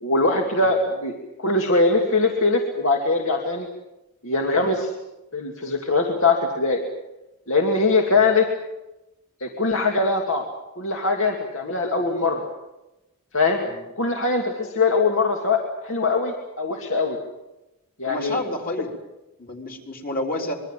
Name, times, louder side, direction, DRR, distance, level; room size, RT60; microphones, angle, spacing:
voice 1, 0.0-3.7 4.2-4.9 5.3-6.8 7.5-8.5 9.4-10.4 10.8-12.4 13.3-13.6 14.0-17.2 18.0-18.4, left 3 dB, 60° left, 1 dB, 2.5 m, -22 dB
voice 2, 18.0-18.9 19.4-20.6, left 1 dB, 40° left, 1 dB, 4.0 m, -30 dB
25.5 x 22.5 x 7.5 m, 0.99 s
head